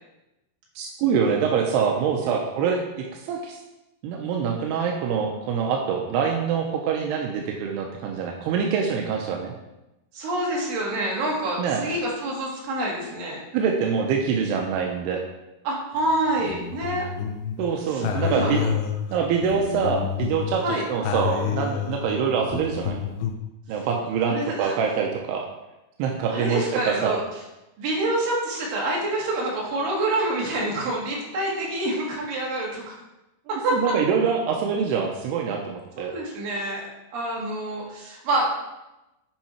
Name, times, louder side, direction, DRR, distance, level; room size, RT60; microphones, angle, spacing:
voice 1, 0.8-3.6 4.0-9.5 11.6-11.9 13.5-15.2 17.6-18.6 19.1-23.0 23.7-25.4 26.0-27.2 33.7-36.1, right 6 dB, 85° right, 1 dB, 2.8 m, -25 dB
voice 2, 10.1-13.4 15.7-17.1 17.9-18.7 20.6-20.8 24.3-24.8 26.3-27.2 27.8-32.9 33.5-33.8 36.0-36.9 37.1-38.5, right 1 dB, 60° right, -3 dB, 3.4 m, -27 dB
sound 1, 16.1-17.6 18.0-20.6 21.0-23.3, left 7 dB, 80° left, 2.1 m, -29 dB
8.9 x 5.7 x 4.3 m, 0.96 s
omnidirectional pair, 4.7 m